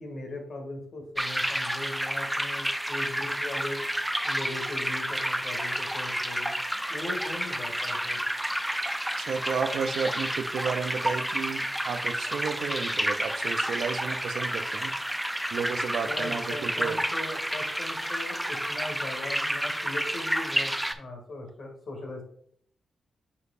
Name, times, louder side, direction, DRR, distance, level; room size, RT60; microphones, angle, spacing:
voice 1, 0.0-3.8 4.2-6.5 6.9-8.2 16.0-22.2, left 2 dB, 65° left, 1 dB, 2.2 m, -39 dB
sound 1, 1.2-20.9, equal, 5° right, 0.6 m, -30 dB
voice 2, 9.2-14.9 15.5-17.0, right 6 dB, 75° right, 9 dB, 0.5 m, -32 dB
8.4 x 5.0 x 2.5 m, 0.64 s
supercardioid pair, 45°, 0 cm